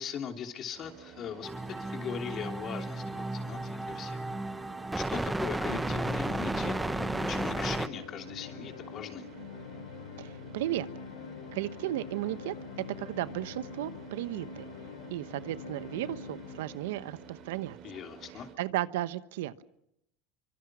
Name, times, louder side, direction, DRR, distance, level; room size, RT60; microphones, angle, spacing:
voice 1, 0.0-1.5 1.8-4.2 5.0-9.3 17.8-18.5, left 8 dB, 40° left, 5 dB, 3.1 m, -40 dB
Car / Idling, 0.7-18.5, right 10 dB, 45° right, 5.5 m, -51 dB
sound 1, 1.4-7.9, right 2 dB, 5° right, 0.9 m, -33 dB
sound 2, 5.6-17.6, left 7 dB, 90° left, 1.2 m, -45 dB
voice 2, 10.2-10.9 11.5-12.5 13.0-14.7 15.1-18.0 18.6-19.6, right 14 dB, 85° right, 14 dB, 1.0 m, -34 dB
28.0 x 24.5 x 6.2 m, 0.81 s
supercardioid pair, 120°, 0 cm